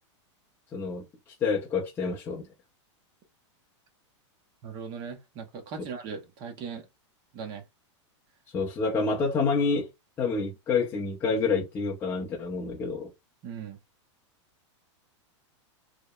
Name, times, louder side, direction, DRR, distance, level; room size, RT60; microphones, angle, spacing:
voice 1, 0.7-1.0 1.4-2.5 8.5-9.9 10.2-13.1, left 4 dB, 15° left, 0.4 m, -28 dB
voice 2, 4.6-6.9 7.3-7.6 13.4-13.8, right 6 dB, 30° right, 0.6 m, -39 dB
2.7 x 2.0 x 2.3 m
supercardioid pair, 160°, 16 cm